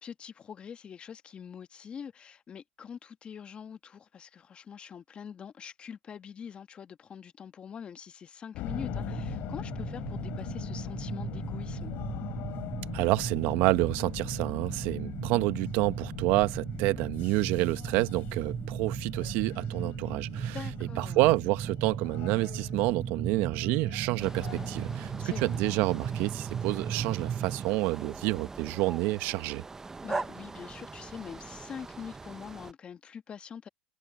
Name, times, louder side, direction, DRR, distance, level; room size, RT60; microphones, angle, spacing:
voice 1, 0.0-11.9 20.4-21.2 25.2-25.6 30.0-33.7, left 7 dB, 30° left, 1.4 m, -44 dB
sound 1, 8.5-26.3, left 18 dB, 55° left, 5.2 m, -42 dB
sound 2, 8.7-27.7, right 8 dB, 30° right, 1.5 m, -37 dB
voice 2, 12.9-20.6 21.0-29.6, right 20 dB, 60° right, 1.2 m, -28 dB
sound 3, 24.2-32.7, right 3 dB, 15° right, 0.8 m, -42 dB
supercardioid pair, 115°, 4 cm